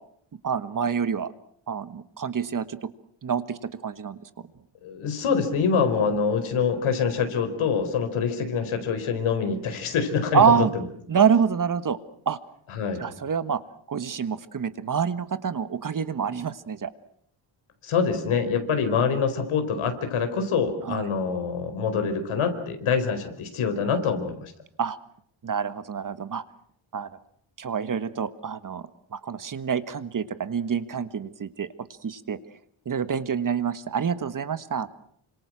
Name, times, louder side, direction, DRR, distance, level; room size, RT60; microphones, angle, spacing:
voice 1, 0.4-1.3 1.7-2.9 3.2-4.5 10.3-10.7 11.1-12.0 12.2-12.4 13.0-13.6 13.9-16.9 20.8-21.1 24.8-25.0 25.4-26.4 26.9-27.1 27.6-28.8 29.1-31.7 32.0-32.4 32.8-34.9, right 7 dB, 40° right, 12 dB, 1.5 m, -26 dB
voice 2, 4.8-10.8 12.7-13.0 17.8-24.5, left 6 dB, 85° left, 7 dB, 4.7 m, -25 dB
28.5 x 26.0 x 6.3 m, 0.65 s
wide cardioid pair, 130°, 48 cm